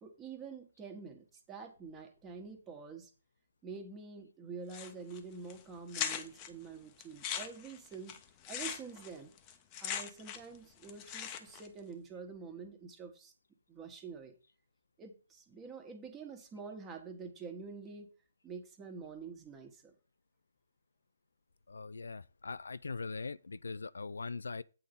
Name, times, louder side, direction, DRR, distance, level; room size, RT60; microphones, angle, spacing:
voice 1, 0.0-3.1 3.6-8.2 8.5-9.3 9.8-13.3 13.7-14.3 15.0-18.1 18.4-19.9, right 5 dB, 15° right, 1.5 m, -47 dB
sound 1, 4.7-5.2 5.5-5.6 5.9-6.5 7.0-10.6 10.8-11.7, left 9 dB, 25° left, 0.9 m, -39 dB
voice 2, 21.7-24.6, left 4 dB, 80° left, 0.3 m, -41 dB
8.5 x 3.8 x 6.9 m
figure-of-eight pair, 140°, 0 cm